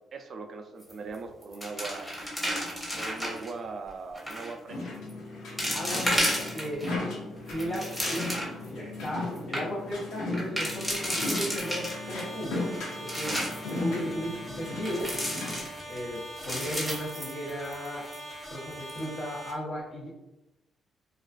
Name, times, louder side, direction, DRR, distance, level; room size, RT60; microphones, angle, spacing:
voice 1, 0.1-2.2 2.9-4.9 13.3-13.4, right 4 dB, 55° right, 5 dB, 0.3 m, -40 dB
sound 1, 0.8-1.2 1.4-3.5 4.2-4.5 5.1-5.2 5.6-6.9 7.4-8.7 9.1-9.2 9.4-9.6 10.3-12.2 12.7-13.7 14.9-16.0 16.4-17.9 18.1-18.2 18.7-19.0, equal, 5° left, 1.0 m, -32 dB
sound 2, 4.7-15.6, left 2 dB, 90° left, 0.6 m, -37 dB
voice 2, 5.7-6.9 7.5-8.4 8.7-12.7 13.0-15.2 15.8-18.0 18.5-20.1, equal, 60° left, -9 dB, 0.9 m, -35 dB
sound 3, 11.6-19.5, equal, 30° left, 1.1 m, -43 dB
2.4 x 2.3 x 2.3 m, 0.96 s
cardioid pair, 90°, 0 cm